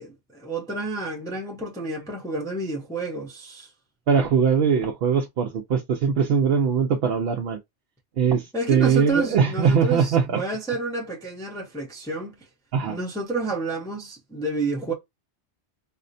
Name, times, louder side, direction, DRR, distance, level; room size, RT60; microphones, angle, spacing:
voice 1, 0.0-3.7 8.5-12.4 12.9-14.9, right 3 dB, 5° left, 0.6 m, -30 dB
voice 2, 4.1-7.6 8.2-10.4 12.7-13.0, right 6 dB, 65° right, 0.8 m, -21 dB
4.1 x 2.1 x 2.6 m
omnidirectional pair, 1.2 m